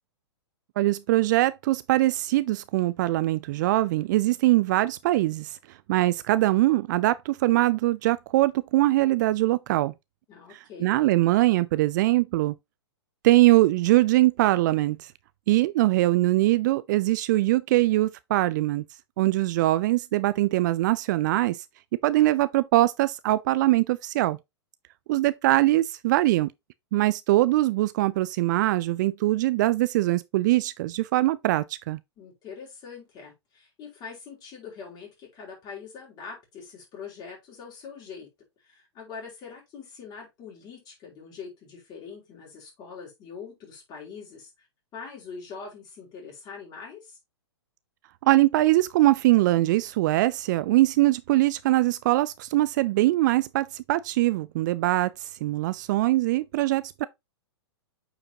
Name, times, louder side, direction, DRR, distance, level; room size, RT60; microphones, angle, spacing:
voice 1, 0.8-5.6 5.9-9.9 10.8-12.5 13.2-15.1 15.5-18.8 19.2-21.6 22.0-24.4 25.1-26.5 26.9-32.0 48.2-57.0, right 17 dB, 45° right, 0.4 m, -22 dB
voice 2, 10.3-10.9 32.2-38.3 38.6-44.7 44.9-47.2, left 5 dB, 30° left, 4.5 m, -43 dB
8.6 x 4.8 x 2.8 m
figure-of-eight pair, 110°, 15 cm